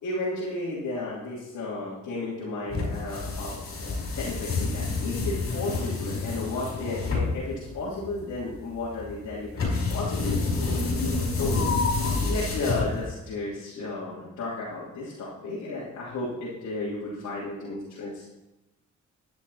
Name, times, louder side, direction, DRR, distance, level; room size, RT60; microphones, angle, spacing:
voice 1, 0.0-9.6 9.9-10.6 11.1-11.6 12.2-18.4, left 2 dB, 70° left, -7 dB, 3.1 m, -33 dB
sound 1, 2.7-13.3, left 3 dB, 50° left, 4.9 m, -28 dB
12.5 x 10.0 x 4.2 m, 0.96 s
cardioid pair, 90°, 30 cm